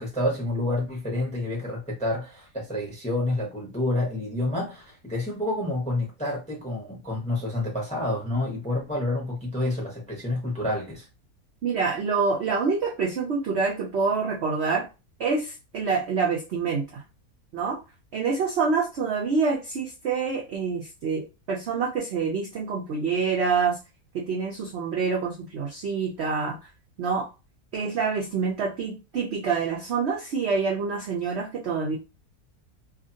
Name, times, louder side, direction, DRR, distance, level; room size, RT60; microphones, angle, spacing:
voice 1, 0.0-11.1, left 1 dB, 5° left, 0.6 m, -28 dB
voice 2, 11.6-14.9 15.2-17.0 17.5-17.8 18.1-23.8 24.1-26.6 27.0-27.3 27.7-32.0, right 5 dB, 65° right, 0.6 m, -26 dB
2.6 x 2.4 x 2.6 m
omnidirectional pair, 1.7 m